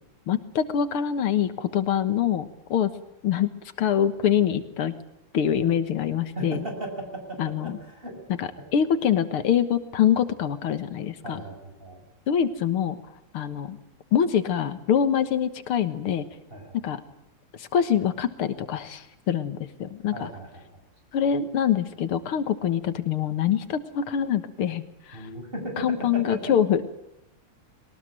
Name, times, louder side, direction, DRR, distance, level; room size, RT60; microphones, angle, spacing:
voice 1, 0.3-2.5 2.7-2.9 3.2-3.5 3.8-4.9 5.3-6.6 7.4-7.8 8.4-11.4 12.3-13.0 13.3-13.8 14.1-16.3 16.8-17.0 17.6-20.3 21.1-24.8 25.1-25.3 25.8-26.8, left 9 dB, 85° left, 11 dB, 2.3 m, -24 dB
voice 2, 6.4-8.2 11.2-12.0 16.5-16.8 20.1-20.6 25.1-25.9 26.1-26.5, right 1 dB, 25° right, 3 dB, 6.9 m, -36 dB
22.0 x 19.5 x 9.1 m, 0.85 s
omnidirectional pair, 2.3 m